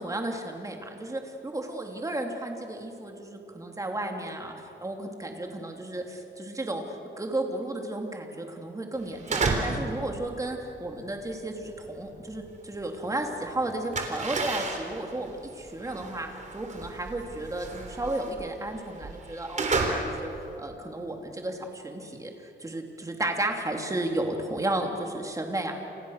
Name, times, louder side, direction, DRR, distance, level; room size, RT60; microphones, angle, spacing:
voice 1, 0.0-20.3 20.6-25.7, right 1 dB, 15° right, 2 dB, 3.0 m, -33 dB
sound 1, 9.0-9.9 10.2-13.1 13.4-20.6, right 3 dB, 40° right, 3.6 m, -32 dB
29.5 x 28.5 x 6.6 m, 2.8 s
wide cardioid pair, 155°, 19 cm